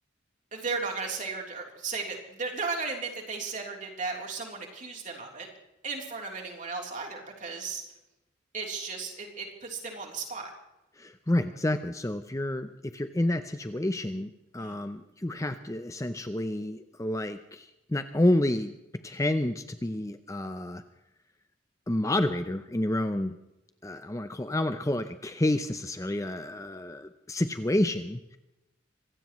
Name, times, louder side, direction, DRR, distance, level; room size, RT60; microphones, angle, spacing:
voice 1, 0.5-5.5 5.8-7.8 8.5-10.5 14.6-14.8, right 4 dB, 40° right, 1 dB, 3.4 m, -35 dB
voice 2, 11.0-18.7 19.0-20.8 21.9-23.3 23.8-28.4, left 1 dB, 15° left, 9 dB, 0.6 m, -29 dB
25.5 x 16.5 x 3.1 m, 0.92 s
head